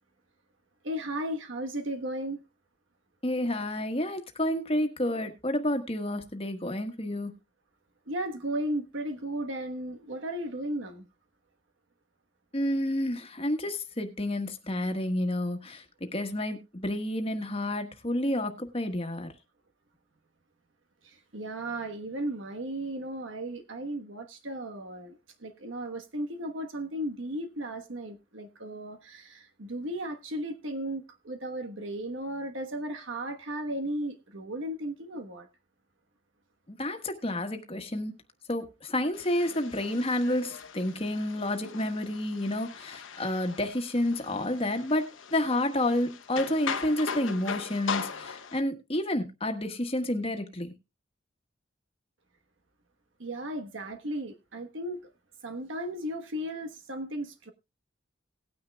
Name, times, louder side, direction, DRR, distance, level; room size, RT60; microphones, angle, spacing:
voice 1, 0.8-2.4 8.1-11.1 21.0-35.5 53.2-55.1 55.4-57.5, right 1 dB, 75° right, 1.2 m, -35 dB
voice 2, 3.2-7.3 12.5-15.8 16.1-19.3 36.7-38.1 38.5-50.7, left 1 dB, 30° left, 1.4 m, -30 dB
sound 1, 39.1-48.6, left 6 dB, 85° left, 1.1 m, -39 dB
18.5 x 9.5 x 2.3 m
head